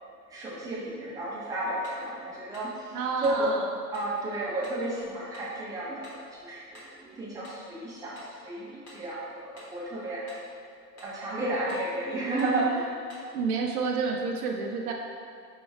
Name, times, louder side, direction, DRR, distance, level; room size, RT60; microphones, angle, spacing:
voice 1, 0.3-3.5 3.9-10.3 10.9-12.9, right 2 dB, 10° right, -7 dB, 0.5 m, -32 dB
sound 1, 1.8-2.1 2.5-2.8 3.2-3.5 3.9-4.1 4.6-4.9 5.3-5.6 6.0-6.3 6.7-7.0 7.4-7.7 8.1-8.4 8.9-9.1 9.6-9.8 10.3-10.5 11.0-11.2 11.7-11.9 12.4-12.6 13.1-13.3, left 1 dB, 30° left, 1.2 m, -50 dB
voice 2, 2.9-3.7 13.3-14.9, right 4 dB, 65° right, 1 dB, 0.5 m, -29 dB
5.4 x 2.2 x 3.4 m, 2.3 s
hypercardioid pair, 110°, 49 cm